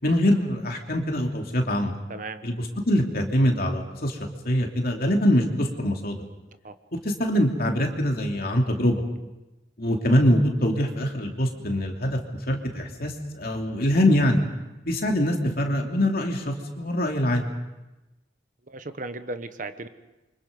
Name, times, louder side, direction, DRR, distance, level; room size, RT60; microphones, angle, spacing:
voice 1, 0.0-2.0 2.4-2.6 2.9-4.2 4.4-6.2 6.9-9.0 9.8-12.2 12.5-14.4 14.8-17.5, equal, 50° left, 2 dB, 3.0 m, -23 dB
voice 2, 2.1-2.4 6.6-6.7 18.7-19.9, right 2 dB, 45° right, 10 dB, 1.1 m, -35 dB
28.5 x 25.0 x 5.3 m, 1.0 s
head